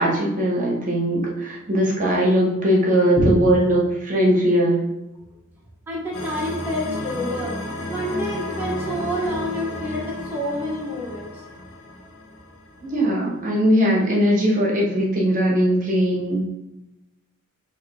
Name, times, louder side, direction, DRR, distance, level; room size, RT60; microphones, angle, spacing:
voice 1, 0.0-4.9 12.8-16.4, equal, 40° right, -3 dB, 1.1 m, -20 dB
voice 2, 5.9-7.5 7.9-11.4, equal, 10° right, -5 dB, 0.9 m, -27 dB
sound 1, 6.1-13.2, left 1 dB, 75° left, 0.9 m, -33 dB
5.7 x 2.7 x 3.3 m, 0.92 s
head